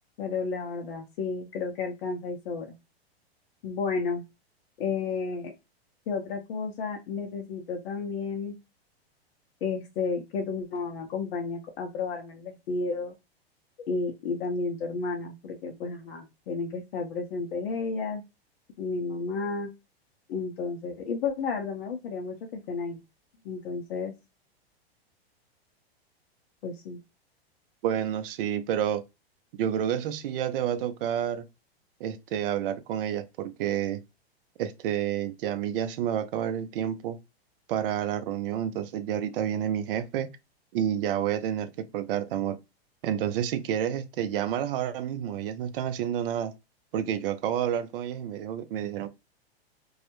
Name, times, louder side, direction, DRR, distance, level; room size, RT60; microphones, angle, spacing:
voice 1, 0.2-2.7 3.6-4.2 4.8-5.5 6.1-8.6 9.6-13.1 13.9-18.2 18.8-19.7 20.3-23.0 23.4-24.1 26.6-27.0, left 4 dB, 65° left, 0.6 m, -32 dB
voice 2, 27.8-29.0 29.6-31.5 32.0-34.0 34.6-37.2 37.7-40.3 40.7-42.6 43.0-46.5 46.9-49.1, right 10 dB, 60° right, 0.5 m, -29 dB
2.3 x 2.0 x 2.8 m
hypercardioid pair, 115°, 31 cm